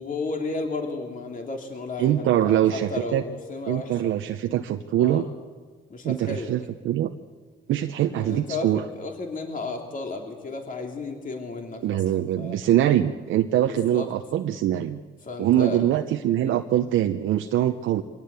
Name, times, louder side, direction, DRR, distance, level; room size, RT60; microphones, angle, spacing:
voice 1, 0.0-4.1 5.0-5.3 5.9-6.5 8.2-12.6 13.7-14.1 15.2-15.8 16.3-16.6, left 3 dB, 40° left, 2 dB, 3.1 m, -33 dB
voice 2, 2.0-3.2 3.7-5.3 6.0-7.1 7.7-8.8 11.8-15.0 15.4-18.0, right 12 dB, 80° right, 5 dB, 0.8 m, -23 dB
23.5 x 18.0 x 8.3 m, 1.5 s
cardioid pair, 90°, 20 cm